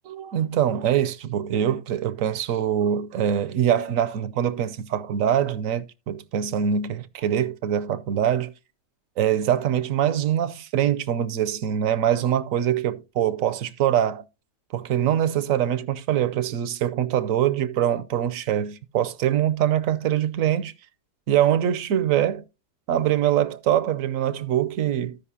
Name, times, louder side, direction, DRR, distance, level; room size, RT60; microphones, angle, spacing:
voice 1, 0.0-8.5 9.2-14.2 14.7-20.7 21.3-22.4 22.9-25.2, right 10 dB, 65° right, 0.9 m, -23 dB
14.5 x 5.3 x 2.7 m
omnidirectional pair, 1.8 m